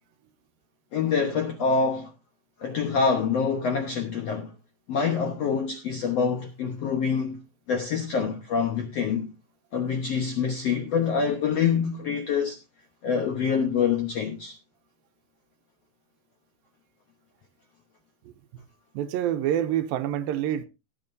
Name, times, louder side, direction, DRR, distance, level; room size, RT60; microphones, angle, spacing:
voice 1, 0.9-2.1 2.6-4.5 4.9-7.4 7.7-9.3 9.7-12.6 13.0-14.5, left 6 dB, 70° left, 1.5 m, -26 dB
voice 2, 18.9-20.7, right 11 dB, 80° right, 2.3 m, -27 dB
18.0 x 8.9 x 2.6 m
omnidirectional pair, 4.4 m